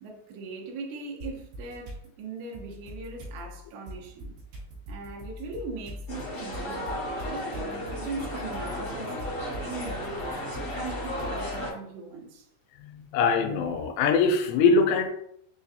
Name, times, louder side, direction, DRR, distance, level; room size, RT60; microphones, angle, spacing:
voice 1, 0.0-4.4 4.9-9.2 9.6-10.4 10.7-12.5, right 3 dB, 85° right, 3.1 m, -40 dB
sound 1, 1.2-2.1 2.5-11.7, left 1 dB, 70° right, 3.2 m, -41 dB
sound 2, 6.1-11.7, equal, 70° left, 1.2 m, -34 dB
voice 2, 12.8-15.1, left 4 dB, 85° left, 2.8 m, -23 dB
6.9 x 2.4 x 2.6 m
omnidirectional pair, 5.0 m